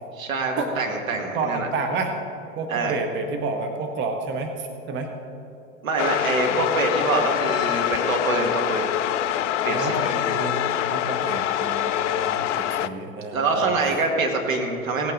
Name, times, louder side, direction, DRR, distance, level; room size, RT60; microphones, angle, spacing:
voice 1, 0.2-1.7 2.7-3.0 5.8-8.9 9.6-10.1 13.3-15.1, right 3 dB, 70° right, 2 dB, 2.0 m, -25 dB
voice 2, 1.3-2.1 2.6-5.1 6.5-6.6 9.7-13.7, right 4 dB, 25° right, 5 dB, 0.9 m, -30 dB
sound 1, 6.0-12.9, left 11 dB, 60° left, 0.5 m, -25 dB
17.0 x 8.9 x 3.9 m, 2.9 s
figure-of-eight pair, 95°, 42 cm